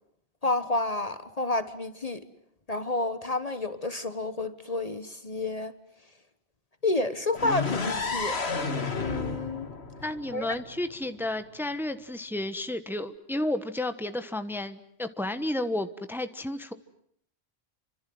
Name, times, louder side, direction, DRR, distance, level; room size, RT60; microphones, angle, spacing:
voice 1, 0.4-2.2 2.7-5.7 6.8-8.4 8.7-9.7 10.3-10.6, left 2 dB, 35° left, 1.4 m, -30 dB
sound 1, 7.4-11.2, left 4 dB, 80° left, 2.2 m, -32 dB
voice 2, 10.0-16.7, left 1 dB, ahead, 1.3 m, -32 dB
29.5 x 25.5 x 7.8 m
omnidirectional pair, 1.1 m